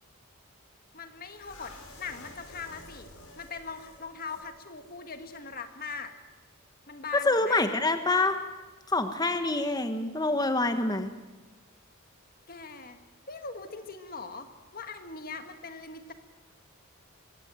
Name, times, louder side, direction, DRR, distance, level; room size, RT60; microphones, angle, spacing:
voice 1, 0.9-6.1 6.9-7.6 12.5-13.0 13.3-16.1, left 4 dB, 40° left, 7 dB, 1.8 m, -41 dB
sound 1, 1.3-4.5 4.7-4.9 5.3-5.4, left 2 dB, 80° left, 6.2 m, -50 dB
voice 2, 7.1-8.3 8.9-11.1, left 2 dB, 20° left, 8 dB, 1.3 m, -26 dB
24.5 x 16.0 x 9.0 m, 1.2 s
head